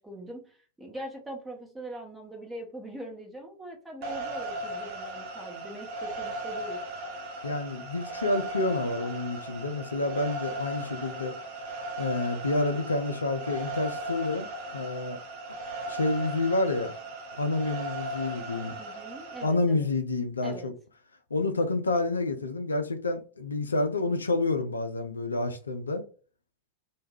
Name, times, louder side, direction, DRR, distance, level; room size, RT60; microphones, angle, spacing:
voice 1, 0.0-6.8 18.8-19.9 20.4-20.7, right 1 dB, 5° right, 0.8 m, -42 dB
sound 1, 4.0-19.5, right 1 dB, 45° right, 0.7 m, -37 dB
voice 2, 7.4-11.3 12.0-14.5 14.7-15.2 15.9-16.9 17.3-18.8 19.4-20.7 21.3-26.0, left 2 dB, 75° left, 0.3 m, -29 dB
2.2 x 2.1 x 3.2 m
figure-of-eight pair, 90°, 0 cm